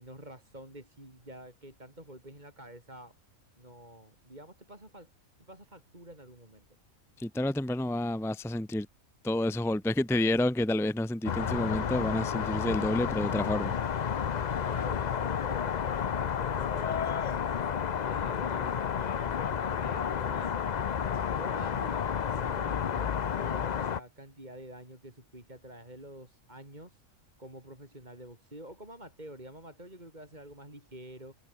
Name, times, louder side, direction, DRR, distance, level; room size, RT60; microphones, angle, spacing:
voice 1, 0.0-3.1 3.6-5.1 5.5-6.6 14.7-20.5 21.3-27.0 27.4-31.3, right 1 dB, 30° right, 6.5 m, -48 dB
voice 2, 7.2-8.9 9.2-13.7, left 1 dB, ahead, 0.7 m, -29 dB
sound 1, 11.2-24.0, left 7 dB, 45° left, 0.6 m, -31 dB
omnidirectional pair, 1.4 m